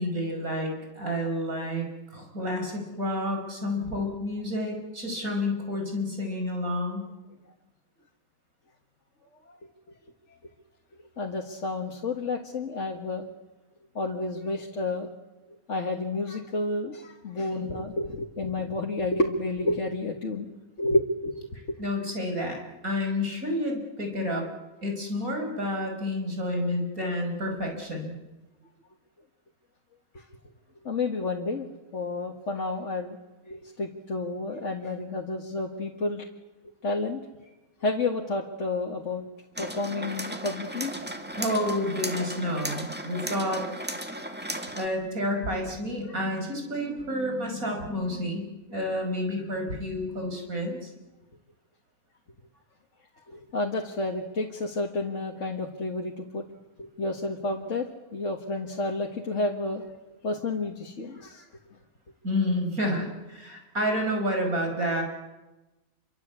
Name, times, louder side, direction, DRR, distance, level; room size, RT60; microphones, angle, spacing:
voice 1, 0.0-1.9 2.1-7.0 17.5-17.6 21.8-22.6 22.8-24.4 24.8-28.1 41.4-43.6 44.2-48.4 48.7-50.9 62.2-65.0, left 1 dB, 90° right, 3 dB, 5.8 m, -30 dB
voice 2, 11.2-13.3 14.0-15.1 15.7-20.5 20.8-21.8 30.1-30.2 30.8-31.7 31.9-33.2 33.5-36.3 36.8-37.2 37.8-39.2 39.6-40.9 53.3-56.4 56.8-57.9 58.1-59.8 60.2-61.5, left 2 dB, 60° left, 0 dB, 2.1 m, -30 dB
sound 1, 39.6-44.9, right 1 dB, 5° right, 2.1 m, -35 dB
27.5 x 24.0 x 8.3 m, 1.1 s
omnidirectional pair, 1.4 m